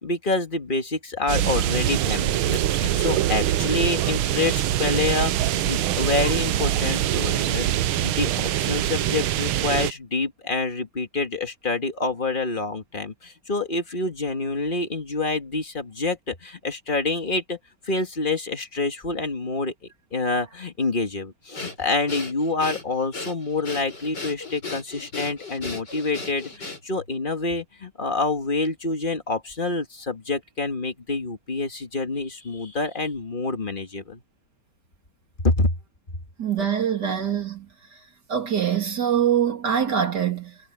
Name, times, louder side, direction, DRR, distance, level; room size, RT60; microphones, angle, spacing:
voice 1, 0.0-17.6 17.8-19.7 20.1-34.2 35.4-35.7, left 3 dB, 25° left, 2.1 m, -27 dB
sound 1, 1.3-9.9, right 12 dB, 90° right, 1.7 m, -24 dB
Breathing, 21.5-27.1, left 3 dB, 55° left, 7.3 m, -36 dB
voice 2, 36.4-37.7 38.3-40.6, right 8 dB, 55° right, 3.2 m, -24 dB
omnidirectional pair, 2.2 m